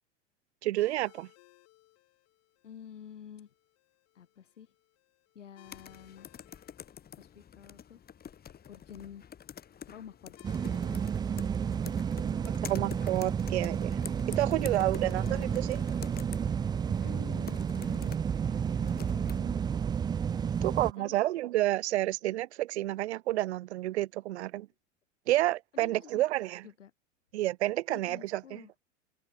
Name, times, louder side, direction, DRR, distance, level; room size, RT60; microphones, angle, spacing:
voice 1, 0.6-1.3 12.5-14.0 14.4-15.8 20.6-24.7 25.3-26.6 27.3-28.6, right 15 dB, 60° right, 0.6 m, -30 dB
sound 1, 0.8-19.9, left 19 dB, 40° left, 6.9 m, -64 dB
voice 2, 2.6-3.5 4.1-4.7 5.3-6.3 7.2-8.0 8.7-9.3 9.9-10.4 10.8-11.1 11.7-12.0 12.5-12.9 14.5-15.7 16.9-19.6 20.5-21.1 25.7-26.2 26.6-26.9 27.9-28.7, left 8 dB, 70° left, 7.6 m, -49 dB
sound 2, 5.6-19.4, left 8 dB, 25° left, 4.0 m, -48 dB
sound 3, 10.4-20.9, right 7 dB, 10° right, 0.5 m, -31 dB
open air
figure-of-eight pair, 90°, 37 cm